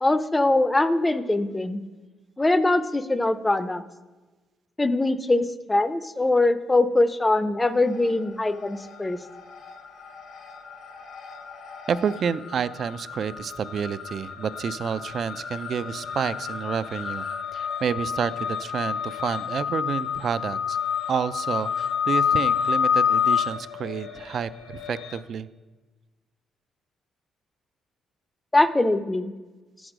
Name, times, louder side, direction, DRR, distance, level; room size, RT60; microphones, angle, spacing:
voice 1, 0.0-1.8 2.4-3.8 4.8-9.2 28.5-29.3, left 2 dB, 15° left, 12 dB, 0.5 m, -22 dB
sound 1, 7.6-8.3 8.6-25.2, left 7 dB, 65° left, 1.0 m, -29 dB
voice 2, 11.9-17.3 17.5-20.8 21.1-25.5, right 7 dB, 55° right, 15 dB, 0.3 m, -29 dB
7.9 x 6.2 x 5.0 m, 1.3 s
cardioid pair, 90°, 0 cm